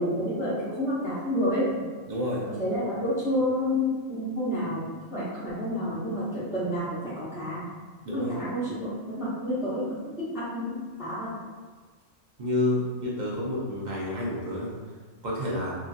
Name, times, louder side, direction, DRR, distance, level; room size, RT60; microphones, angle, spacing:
voice 1, 0.0-1.8 2.6-7.6 8.1-11.3, equal, 5° right, -10 dB, 0.6 m, -29 dB
voice 2, 2.1-2.5 8.0-8.3 12.4-14.7 15.2-15.8, left 1 dB, 55° right, -5 dB, 0.5 m, -29 dB
2.9 x 2.5 x 2.4 m, 1.4 s
omnidirectional pair, 1.3 m